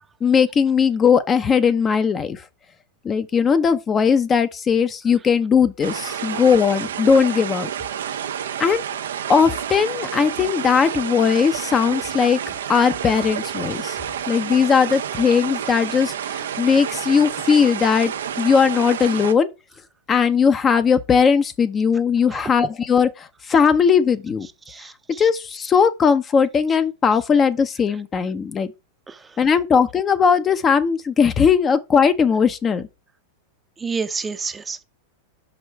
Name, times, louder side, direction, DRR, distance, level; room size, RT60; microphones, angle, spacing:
voice 1, 0.2-2.4 3.0-7.7 8.6-8.8 9.3-12.4 12.7-14.0 14.3-19.5 20.1-24.5 25.2-28.7 29.4-32.8, left 6 dB, 25° left, 0.7 m, -18 dB
sound 1, 5.8-19.3, right 9 dB, 85° right, 0.7 m, -29 dB
voice 2, 22.3-22.7 24.7-25.3 29.1-29.4 33.8-34.8, right 5 dB, 15° right, 0.7 m, -30 dB
5.4 x 5.0 x 4.6 m
hypercardioid pair, 115°, 0 cm